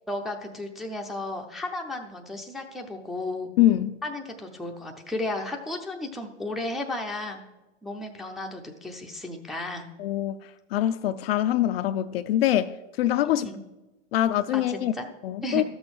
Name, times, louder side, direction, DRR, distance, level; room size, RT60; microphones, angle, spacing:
voice 1, 0.1-3.5 4.0-7.4 7.8-9.9 13.2-13.6 14.5-15.1 15.4-15.6, left 2 dB, ahead, 0.5 m, -34 dB
voice 2, 3.6-4.0 10.0-10.4 10.7-13.5 14.1-14.9 15.2-15.6, left 13 dB, 50° left, 0.4 m, -24 dB
13.0 x 6.3 x 4.8 m
hypercardioid pair, 120°, 39 cm